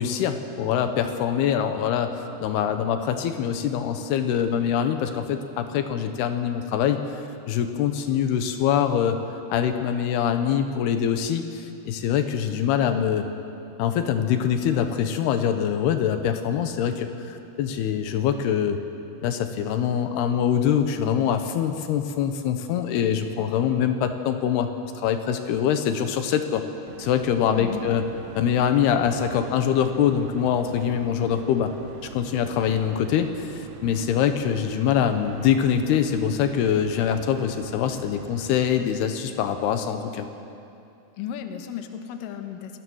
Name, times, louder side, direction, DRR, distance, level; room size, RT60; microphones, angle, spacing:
voice 1, 0.0-2.1 2.4-7.0 7.5-9.2 9.5-13.3 13.8-18.8 19.2-26.6 27.0-28.0 28.4-31.7 32.1-40.3, left 8 dB, 85° left, 7 dB, 3.0 m, -24 dB
sound 1, 26.9-38.8, right 8 dB, 70° right, 2.3 m, -43 dB
voice 2, 27.6-27.9 41.2-42.8, left 9 dB, 65° left, 6 dB, 2.6 m, -34 dB
27.5 x 19.5 x 6.3 m, 2.7 s
omnidirectional pair, 4.5 m